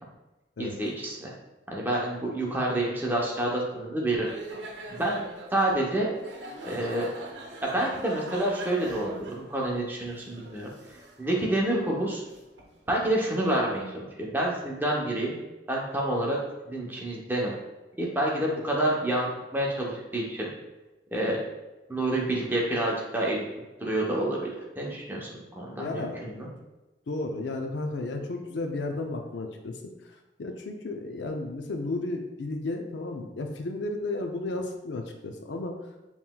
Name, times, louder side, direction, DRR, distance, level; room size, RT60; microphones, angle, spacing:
voice 1, 0.6-1.3 1.7-4.3 4.9-5.3 5.5-6.1 6.6-7.1 7.6-10.7 11.2-12.2 12.9-15.4 15.7-16.4 16.7-17.6 18.0-19.3 19.5-20.5 21.1-21.4 21.9-23.4 23.8-24.5 24.8-26.5, right 1 dB, 10° right, -3 dB, 0.7 m, -28 dB
sound 1, 4.3-13.1, right 2 dB, 80° right, 0.7 m, -43 dB
voice 2, 25.8-26.5 27.1-29.9 30.4-35.8, left 2 dB, 90° left, 4 dB, 0.5 m, -33 dB
5.4 x 3.0 x 2.2 m, 1.1 s
head